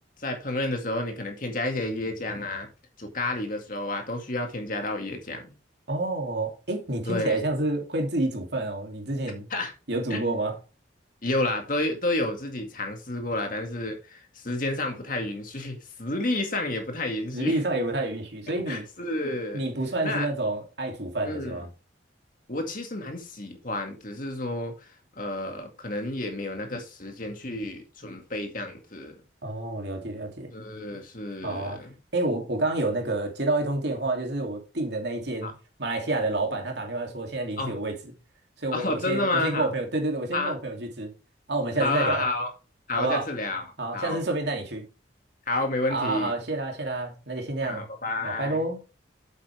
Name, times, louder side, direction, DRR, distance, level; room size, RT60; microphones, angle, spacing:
voice 1, 0.2-2.7 3.0-5.5 7.1-7.4 9.5-9.7 10.1-10.4 11.2-17.6 18.7-19.6 20.0-20.3 21.2-21.6 22.5-24.7 25.2-29.2 30.5-32.0 35.4-35.5 37.6-37.8 38.7-39.7 40.3-40.5 41.8-42.5 42.9-43.7 43.9-44.2 45.5-46.3 47.6-48.6, left 2 dB, 45° left, 2.1 m, -30 dB
voice 2, 5.9-9.5 9.9-10.6 17.3-18.8 19.5-21.7 29.4-30.5 31.4-31.8 32.1-35.5 35.8-38.1 38.6-41.1 41.5-42.3 43.0-43.3 43.8-44.8 45.9-47.9 48.2-48.8, right 2 dB, 60° right, 2.7 m, -29 dB
8.5 x 8.1 x 3.4 m
head